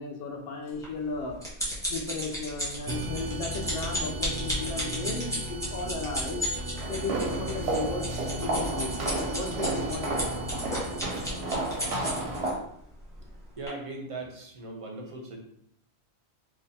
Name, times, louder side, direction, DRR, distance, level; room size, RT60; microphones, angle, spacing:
voice 1, 0.0-1.4 1.9-6.4 6.9-8.1 8.4-10.4, left 3 dB, 70° left, 2 dB, 0.9 m, -35 dB
sound 1, 0.8-12.5 13.1-13.3 13.7-13.8, equal, 5° left, 1.0 m, -34 dB
sound 2, 2.9-12.2, right 1 dB, 70° right, 0.7 m, -37 dB
sound 3, 6.8-12.6, right 2 dB, 90° right, 1.1 m, -32 dB
voice 2, 13.6-15.4, right 2 dB, 40° right, 0 dB, 0.6 m, -39 dB
3.8 x 2.5 x 2.7 m, 0.71 s
omnidirectional pair, 1.1 m